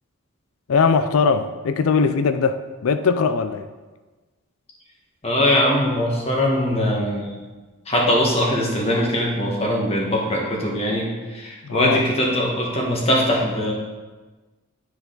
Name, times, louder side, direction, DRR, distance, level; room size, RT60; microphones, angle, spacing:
voice 1, 0.7-3.7 11.6-12.0, left 5 dB, 80° left, 10 dB, 0.4 m, -20 dB
voice 2, 5.2-7.3 7.9-13.7, equal, 30° left, -2 dB, 1.4 m, -21 dB
10.0 x 4.8 x 3.9 m, 1.2 s
head